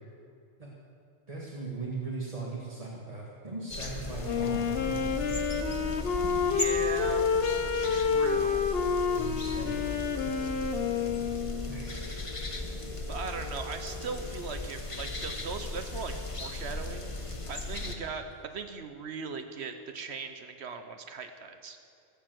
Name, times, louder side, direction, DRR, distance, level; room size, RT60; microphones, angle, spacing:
voice 1, 1.3-5.1 9.1-9.9 11.7-12.5 17.8-18.0, right 3 dB, 30° right, -5 dB, 1.9 m, -39 dB
sound 1, 3.7-17.9, left 2 dB, 30° left, 1.1 m, -37 dB
Wind instrument woodwind instrument, 4.2-12.0, left 6 dB, 65° left, 1.0 m, -29 dB
voice 2, 6.5-7.3 7.7-8.6 13.1-17.1 17.5-21.8, right 5 dB, 70° right, 8 dB, 1.1 m, -38 dB
19.0 x 7.4 x 7.7 m, 2.5 s
omnidirectional pair, 1.1 m